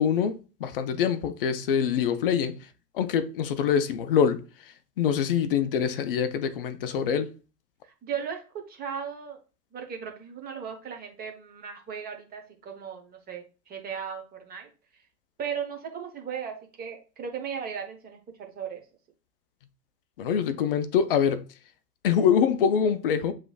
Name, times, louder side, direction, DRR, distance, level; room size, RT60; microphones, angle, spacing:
voice 1, 0.0-2.6 2.9-4.4 5.0-7.3 20.2-21.4 22.0-23.3, left 7 dB, 40° left, 0.4 m, -24 dB
voice 2, 8.0-8.4 8.7-9.4 9.7-14.7 15.4-18.8, right 7 dB, 20° right, 1.0 m, -36 dB
6.7 x 3.1 x 2.3 m
figure-of-eight pair, 100°, 50 cm